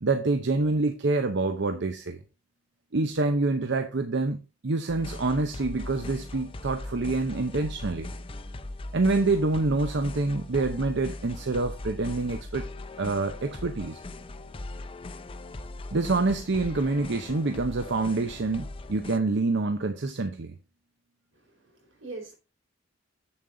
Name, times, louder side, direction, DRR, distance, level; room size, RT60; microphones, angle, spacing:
voice 1, 0.0-2.2 2.9-4.4 4.6-8.1 8.9-12.7 13.0-14.0 15.9-20.5, right 3 dB, 65° right, 0.7 m, -26 dB
sound 1, 4.9-19.2, left 2 dB, 30° left, 0.5 m, -39 dB
voice 2, 21.3-22.4, right 3 dB, 85° right, 4.2 m, -43 dB
7.9 x 7.3 x 3.8 m
head